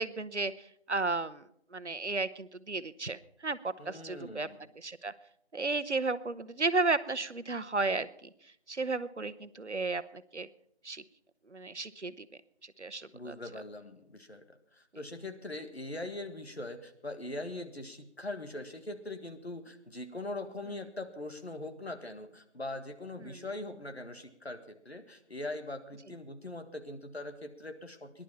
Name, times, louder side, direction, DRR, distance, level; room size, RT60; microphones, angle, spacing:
voice 1, 0.0-4.5 4.8-5.1 5.5-8.3 8.7-10.5 10.8-11.0 11.5-12.3 12.6-13.4 23.2-23.4, right 3 dB, 90° right, 13 dB, 1.0 m, -34 dB
voice 2, 3.8-4.6 13.1-28.2, left 2 dB, 65° left, 7 dB, 1.8 m, -41 dB
19.0 x 11.0 x 5.6 m, 0.73 s
figure-of-eight pair, 170°, 34 cm